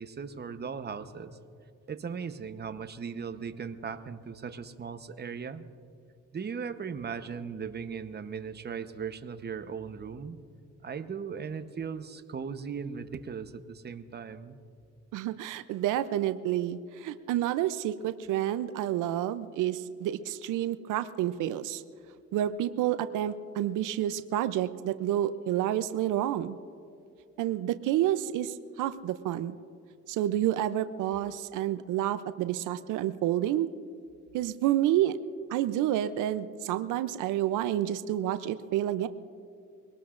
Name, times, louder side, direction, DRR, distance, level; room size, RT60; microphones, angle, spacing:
voice 1, 0.0-1.4 1.9-5.6 6.3-10.4 10.8-14.6, right 6 dB, 35° right, 10 dB, 0.9 m, -38 dB
voice 2, 15.1-21.8 22.3-26.6 27.4-29.6 30.1-33.7 34.3-35.2 35.5-39.1, right 12 dB, 85° right, 12 dB, 0.5 m, -29 dB
23.5 x 18.5 x 2.5 m, 2.5 s
cardioid pair, 90°, 30 cm